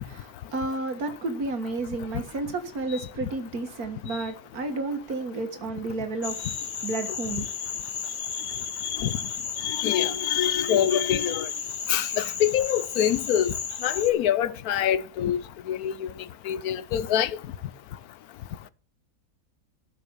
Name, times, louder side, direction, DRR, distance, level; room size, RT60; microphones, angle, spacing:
voice 1, 0.0-6.5 6.8-7.5, right 2 dB, 85° right, 2.2 m, -31 dB
sound 1, 6.2-14.1, left 6 dB, 55° left, 1.3 m, -34 dB
voice 2, 9.6-11.5 11.9-13.5 13.8-15.4 15.7-16.1 16.5-17.3, left 10 dB, 85° left, 1.2 m, -25 dB
13.0 x 6.2 x 7.0 m
omnidirectional pair, 1.5 m